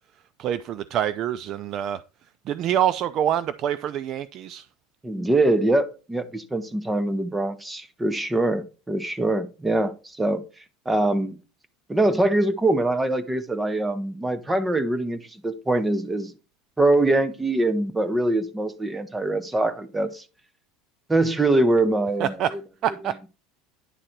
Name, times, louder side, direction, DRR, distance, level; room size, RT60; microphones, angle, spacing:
voice 1, 0.4-2.0 2.5-4.7 22.2-22.6 22.8-23.3, right 10 dB, 40° right, 0.3 m, -26 dB
voice 2, 5.0-10.4 10.9-11.3 11.9-16.3 16.8-20.2 21.1-22.3, right 2 dB, 10° right, 0.8 m, -23 dB
9.9 x 3.8 x 4.4 m
supercardioid pair, 150°, 0 cm